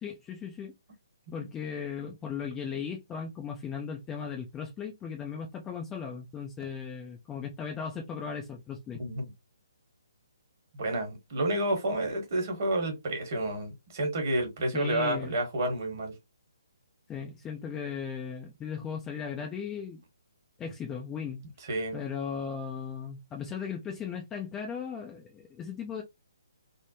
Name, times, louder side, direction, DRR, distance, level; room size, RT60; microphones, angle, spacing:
voice 1, 0.0-0.7 1.3-9.0 14.7-15.3 17.1-20.0 20.6-21.4 21.9-26.0, left 6 dB, 15° left, 0.5 m, -37 dB
voice 2, 10.8-16.1 21.7-22.0, right 1 dB, 45° right, 1.5 m, -30 dB
3.4 x 2.0 x 2.9 m
figure-of-eight pair, 135°, 2 cm